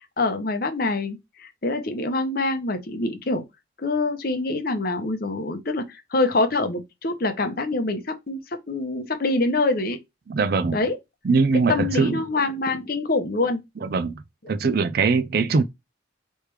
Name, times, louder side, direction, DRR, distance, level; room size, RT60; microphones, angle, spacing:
voice 1, 0.0-3.4 3.8-8.4 8.7-10.0 10.7-10.9 11.7-13.6, left 2 dB, 50° left, 0.8 m, -25 dB
voice 2, 10.3-10.8 11.2-12.2 13.8-15.6, right 4 dB, 50° right, 0.4 m, -22 dB
3.4 x 3.2 x 4.7 m
head